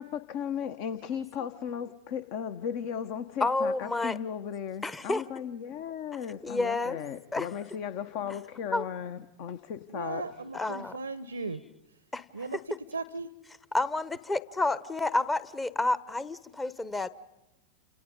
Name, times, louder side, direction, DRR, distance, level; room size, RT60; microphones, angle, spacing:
voice 1, 0.0-10.3, left 8 dB, 45° left, 12 dB, 1.1 m, -36 dB
voice 2, 3.4-4.2 4.8-5.2 6.4-7.0 7.3-7.5 8.7-8.8 10.5-10.9 12.1-12.2 13.7-17.1, left 2 dB, 10° left, 16 dB, 1.0 m, -29 dB
voice 3, 9.9-11.6 12.3-13.3, right 3 dB, 75° right, 17 dB, 0.8 m, -37 dB
29.5 x 27.5 x 5.3 m, 0.98 s
figure-of-eight pair, 90°, 0 cm